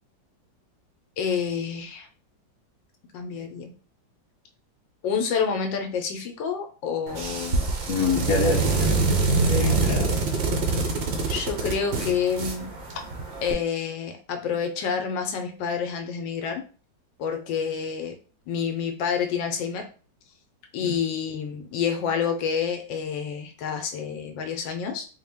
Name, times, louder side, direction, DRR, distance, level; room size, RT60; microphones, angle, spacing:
voice 1, 1.2-2.1 3.1-3.7 5.0-7.6 11.3-12.7 13.4-16.6 17.2-18.1 18.5-19.9 20.7-25.1, left 6 dB, 85° left, 5 dB, 1.3 m, -28 dB
sound 1, 7.1-13.5, right 3 dB, 70° right, 0.6 m, -25 dB
voice 2, 7.9-9.2 9.5-10.1 20.8-20.9, left 5 dB, 55° left, 2 dB, 1.0 m, -26 dB
3.9 x 2.2 x 3.4 m, 0.38 s
omnidirectional pair, 2.0 m